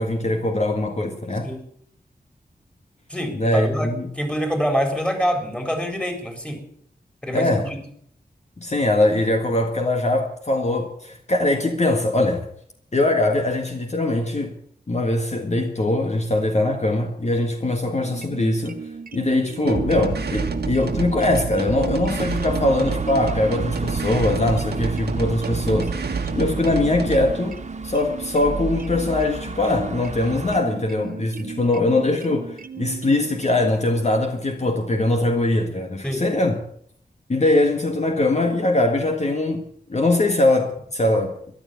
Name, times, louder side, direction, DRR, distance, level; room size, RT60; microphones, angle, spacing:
voice 1, 0.0-1.5 3.3-4.1 7.3-7.7 8.6-12.5 12.9-14.6 14.9-27.6 27.8-36.6 37.3-41.4, left 2 dB, 45° left, 1.7 m, -22 dB
voice 2, 3.1-6.6 7.2-7.8 36.0-36.2, equal, 5° left, 4.1 m, -26 dB
sound 1, 18.0-33.7, right 5 dB, 60° right, 0.9 m, -36 dB
sound 2, 19.7-27.4, right 4 dB, 85° right, 1.6 m, -28 dB
sound 3, 22.1-30.6, right 3 dB, 45° right, 1.7 m, -35 dB
14.0 x 12.0 x 8.3 m
wide cardioid pair, 90°, 16 cm